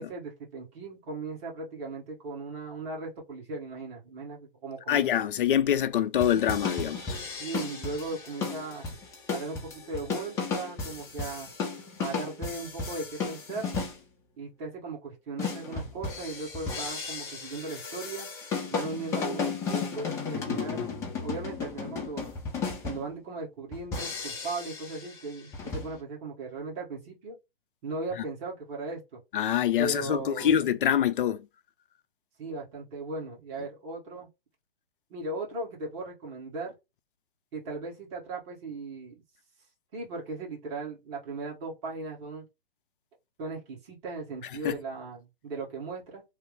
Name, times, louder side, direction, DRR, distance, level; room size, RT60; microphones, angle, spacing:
voice 1, 0.0-5.2 7.4-8.9 9.3-11.5 12.0-13.7 14.4-18.3 18.7-20.9 21.2-22.3 22.8-27.4 27.8-29.2 29.8-30.5 32.4-34.3 35.1-36.7 37.5-39.2 39.9-42.4 43.4-46.2, right 3 dB, 30° right, 1.5 m, -37 dB
voice 2, 4.9-7.1 29.3-31.4 44.6-44.8, left 10 dB, 60° left, 0.6 m, -25 dB
sound 1, 6.2-14.0 15.4-23.1 23.7-25.1 25.5-25.9, left 5 dB, 10° left, 0.6 m, -34 dB
3.2 x 2.0 x 3.4 m
hypercardioid pair, 145°, 30 cm